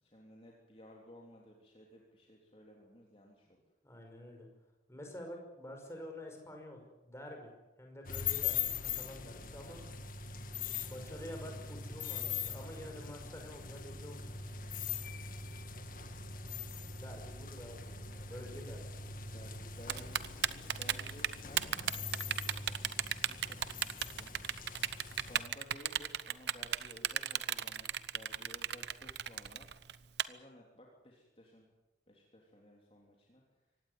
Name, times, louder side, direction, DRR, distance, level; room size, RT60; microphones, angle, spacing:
voice 1, 0.0-3.6 18.1-18.8 19.3-24.4 25.3-29.7 30.2-31.7 32.1-33.4, equal, 30° left, -1 dB, 3.4 m, -57 dB
voice 2, 3.8-4.5 4.9-9.8 10.8-14.3 16.9-18.8, left 1 dB, 15° left, 3 dB, 5.5 m, -48 dB
sound 1, 8.0-25.4, left 6 dB, 45° left, 1.9 m, -42 dB
Typing, 19.9-30.2, right 9 dB, 65° right, 0.9 m, -34 dB
24.5 x 18.0 x 9.5 m, 1.1 s
head